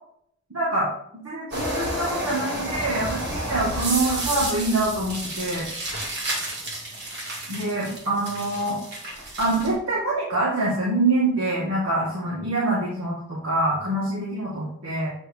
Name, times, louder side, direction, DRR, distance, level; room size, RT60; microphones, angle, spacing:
voice 1, 0.5-5.7 7.5-8.8 9.4-15.1, right 2 dB, 80° right, -7 dB, 2.4 m, -25 dB
sound 1, 1.5-9.7, right 1 dB, 50° right, 2.2 m, -31 dB
8.8 x 6.2 x 3.0 m, 0.70 s
head